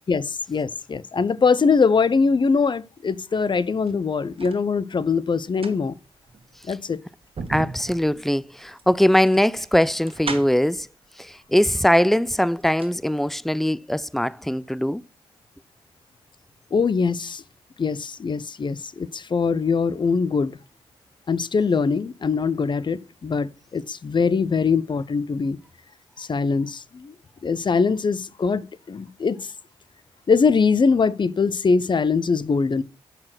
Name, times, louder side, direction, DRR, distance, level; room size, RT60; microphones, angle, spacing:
voice 1, 0.1-5.9 6.7-7.0 16.7-17.4 17.8-20.5 21.3-25.6 26.2-27.1 27.4-29.5 30.3-32.8, left 5 dB, 40° left, 0.7 m, -22 dB
sound 1, 3.7-4.7 5.4-10.8 11.7-11.8 12.2-13.0 13.3-13.4, right 4 dB, 50° right, 1.6 m, -37 dB
voice 2, 7.5-10.9 11.2-15.0, equal, ahead, 0.3 m, -21 dB
6.6 x 5.9 x 5.9 m
hypercardioid pair, 45°, 12 cm